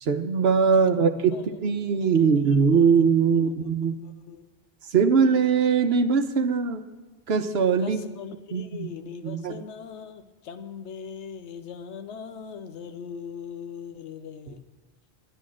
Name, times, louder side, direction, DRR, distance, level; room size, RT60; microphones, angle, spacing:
voice 1, 0.0-4.0 4.9-6.8 7.3-8.0 8.5-8.9 9.2-9.6 14.5-14.6, right 6 dB, 70° right, 8 dB, 1.1 m, -21 dB
voice 2, 2.2-2.6 3.3-3.5 4.0-4.5 7.8-14.6, left 7 dB, 85° left, 8 dB, 1.0 m, -40 dB
11.5 x 10.5 x 6.2 m, 1.3 s
omnidirectional pair, 1.1 m